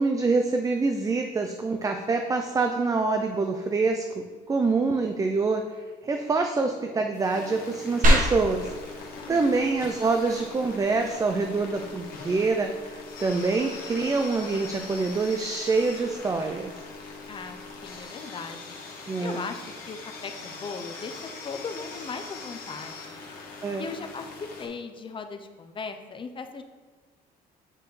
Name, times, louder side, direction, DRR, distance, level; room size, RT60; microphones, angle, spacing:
voice 1, 0.0-5.6 6.0-8.7 9.3-16.7 19.1-19.5 23.6-23.9, right 3 dB, 20° right, 4 dB, 0.4 m, -26 dB
sound 1, 7.1-24.7, left 4 dB, 55° left, 1.6 m, -42 dB
sound 2, 8.0-18.0, equal, 50° right, 1.3 m, -31 dB
voice 2, 9.2-9.5 17.3-18.8 19.2-20.0 20.2-23.2 23.7-26.6, left 4 dB, 30° left, 7 dB, 0.6 m, -38 dB
8.6 x 4.6 x 3.2 m, 1.5 s
cardioid pair, 110°, 17 cm